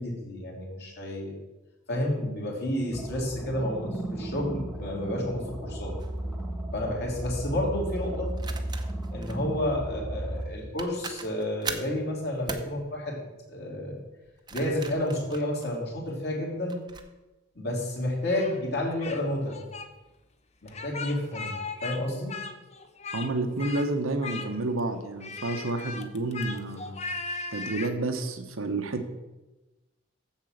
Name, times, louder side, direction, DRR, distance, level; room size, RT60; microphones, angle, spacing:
voice 1, 0.0-1.3 1.9-5.9 6.7-8.3 9.1-14.0 14.5-16.8 17.5-19.6 20.6-21.5 21.8-22.3, left 1 dB, 50° left, -2 dB, 2.9 m, -30 dB
sound 1, 2.9-10.5, right 1 dB, ahead, 1.4 m, -35 dB
sound 2, 6.0-6.2 8.4-9.4 10.4-10.5 10.8-12.0 12.5-12.7 14.2-16.1 16.7-17.1, right 4 dB, 20° right, 0.7 m, -39 dB
Speech, 18.2-19.2 19.5-19.9 20.7-22.0 22.3-23.3 23.6-23.9 24.2-24.8 25.2-27.9, left 4 dB, 30° left, 0.7 m, -37 dB
voice 2, 23.1-27.0 27.5-29.1, right 2 dB, 80° right, 6 dB, 1.0 m, -30 dB
7.5 x 7.4 x 6.6 m, 1.1 s
head